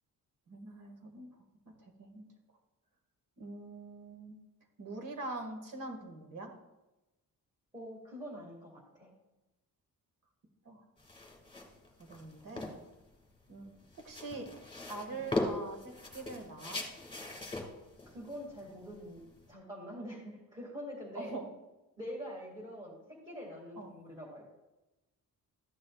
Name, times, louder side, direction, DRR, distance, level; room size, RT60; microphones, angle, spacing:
voice 1, 0.5-1.3 1.8-2.3 3.4-4.4 4.8-6.5 10.6-10.8 12.0-12.7 13.5-13.7 14.0-14.5 14.9-16.8 21.1-21.5 23.8-23.9, right 2 dB, 60° right, 4 dB, 2.1 m, -43 dB
voice 2, 7.7-9.1 15.2-15.3 18.1-19.2 19.5-21.3 22.0-23.0 23.3-24.5, equal, 10° right, -5 dB, 2.3 m, -45 dB
sound 1, 11.0-19.5, left 2 dB, 15° left, 2.1 m, -40 dB
13.5 x 9.8 x 2.4 m, 1.0 s
wide cardioid pair, 160°, 35 cm